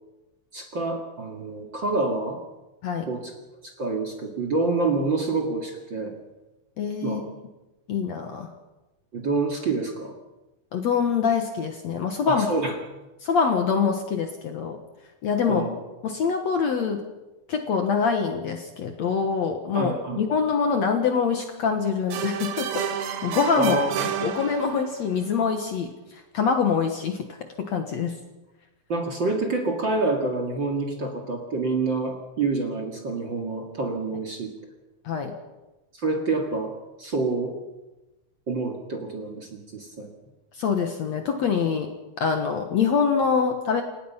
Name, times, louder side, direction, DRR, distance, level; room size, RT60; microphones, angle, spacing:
voice 1, 0.5-2.4 3.1-3.3 3.6-6.1 7.0-7.2 9.1-10.1 12.3-12.7 15.5-15.7 19.7-20.2 23.6-23.9 28.9-34.5 35.9-36.7 37.0-37.6 38.5-40.1, right 3 dB, 35° right, 2 dB, 2.3 m, -27 dB
voice 2, 6.8-7.2 7.9-8.5 10.7-12.5 13.2-14.8 15.2-15.7 16.0-17.0 17.5-23.7 24.2-25.9 26.3-27.3 27.6-28.2 35.1-35.3 40.6-41.9 42.2-43.8, left 6 dB, 60° left, 5 dB, 2.1 m, -24 dB
sound 1, 22.1-25.1, right 8 dB, 80° right, 3.2 m, -30 dB
29.0 x 17.0 x 5.7 m, 1.1 s
omnidirectional pair, 4.3 m